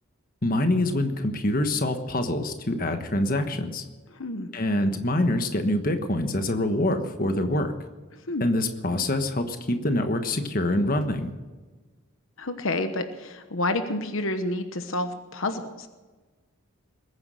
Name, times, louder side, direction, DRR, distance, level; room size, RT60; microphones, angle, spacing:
voice 1, 0.4-3.8 4.5-7.7 8.4-11.3, left 1 dB, 40° left, 7 dB, 1.3 m, -25 dB
voice 2, 12.4-15.9, left 2 dB, 70° left, 8 dB, 1.1 m, -29 dB
21.0 x 9.7 x 6.5 m, 1.3 s
head